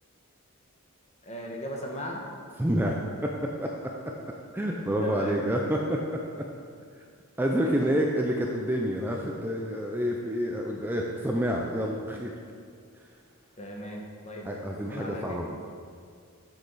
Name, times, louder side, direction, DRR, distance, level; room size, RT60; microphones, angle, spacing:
voice 1, 1.2-2.2 5.0-5.5 7.5-7.8 13.6-15.4, equal, 30° left, 0 dB, 1.1 m, -38 dB
voice 2, 2.6-3.3 3.6-3.9 4.5-6.2 7.4-12.3 14.5-15.6, equal, 10° right, 0 dB, 0.4 m, -28 dB
7.9 x 6.7 x 4.0 m, 2.2 s
head